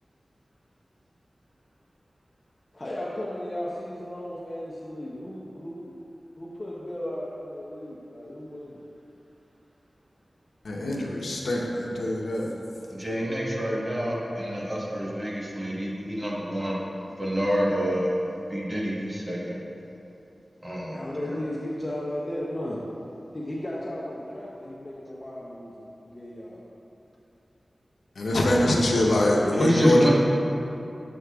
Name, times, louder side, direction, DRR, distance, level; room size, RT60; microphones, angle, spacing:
voice 1, 2.7-5.9 6.4-8.8 12.4-12.7 20.9-22.8 23.3-26.6, left 1 dB, 30° left, -6 dB, 0.7 m, -35 dB
voice 2, 10.6-12.5 28.2-30.1, left 1 dB, 90° left, -2 dB, 0.7 m, -23 dB
voice 3, 12.9-16.8 17.2-18.1 18.5-19.6 20.6-21.4 29.5-30.1, equal, 30° right, -5 dB, 1.1 m, -27 dB
7.5 x 6.3 x 2.3 m, 2.9 s
wide cardioid pair, 80°, 0 cm